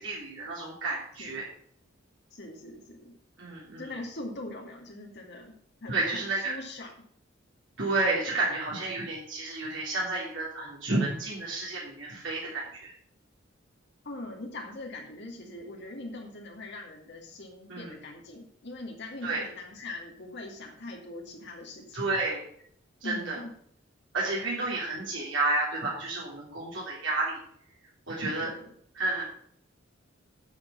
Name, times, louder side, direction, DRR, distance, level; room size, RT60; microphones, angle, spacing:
voice 1, 0.0-1.5 3.4-3.9 5.9-6.5 7.8-12.9 17.7-17.9 19.2-19.4 21.9-22.4 23.0-23.4 24.1-27.4 28.1-28.5 28.9-29.3, right 2 dB, 65° right, -5 dB, 3.2 m, -31 dB
voice 2, 2.3-3.1 3.8-5.5 5.8-6.9 14.0-22.0 23.0-23.5 24.4-24.5 28.4-28.7, left 2 dB, 60° left, 0 dB, 2.3 m, -41 dB
9.5 x 6.8 x 7.0 m, 0.65 s
head